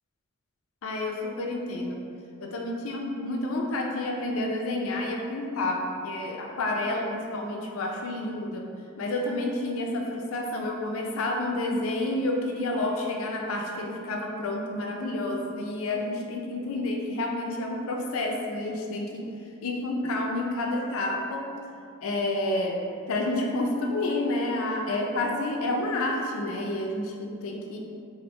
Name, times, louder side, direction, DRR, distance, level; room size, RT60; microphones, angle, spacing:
voice 1, 0.8-2.0 2.4-8.6 9.0-19.2 19.6-21.4 22.0-22.8 23.1-27.8, left 2 dB, 80° left, 1 dB, 0.4 m, -29 dB
2.9 x 2.6 x 3.1 m, 2.4 s
head